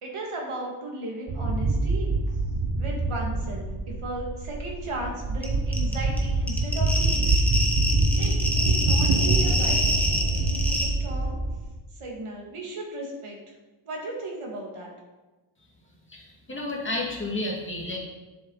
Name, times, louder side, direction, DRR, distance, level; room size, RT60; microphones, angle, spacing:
voice 1, 0.0-2.1 2.7-3.7 4.0-7.6 8.2-9.9 10.4-11.3 12.0-13.4 13.9-14.9, right 1 dB, 90° right, -2 dB, 2.2 m, -36 dB
sound 1, 1.3-11.6, right 2 dB, 50° right, 1.1 m, -25 dB
sound 2, 5.4-5.5 5.7-10.9, equal, 5° left, 1.3 m, -26 dB
voice 2, 16.1-18.0, left 2 dB, 25° left, -2 dB, 2.1 m, -31 dB
10.5 x 7.6 x 4.0 m, 1.1 s
wide cardioid pair, 170°, 49 cm